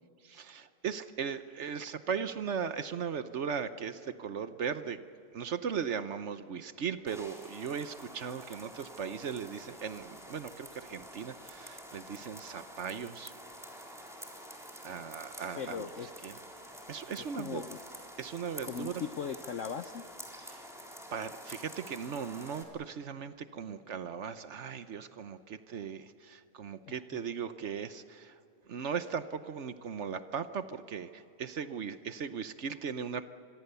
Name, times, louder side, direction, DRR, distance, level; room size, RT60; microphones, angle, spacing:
voice 1, 0.2-5.0 5.3-13.3 14.8-15.9 16.2-16.3 16.9-17.6 18.2-19.0 20.4-20.7 21.1-28.4 28.7-33.3, right 7 dB, 60° right, 11 dB, 0.7 m, -38 dB
sound 1, 7.1-22.6, equal, ahead, 3.7 m, -48 dB
voice 2, 15.6-16.1 17.2-17.8 18.6-20.0 26.8-27.2, left 7 dB, 65° left, 10 dB, 0.7 m, -39 dB
26.0 x 22.5 x 6.9 m, 2.7 s
omnidirectional pair, 2.2 m